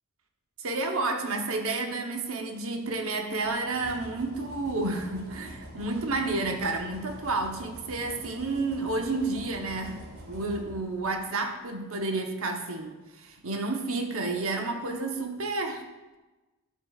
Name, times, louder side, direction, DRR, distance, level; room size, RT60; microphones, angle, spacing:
voice 1, 0.6-15.8, right 3 dB, 65° right, 4 dB, 1.0 m, -31 dB
sound 1, 3.4-11.4, equal, 85° right, 1.9 m, -46 dB
12.5 x 7.7 x 2.4 m, 1.2 s
head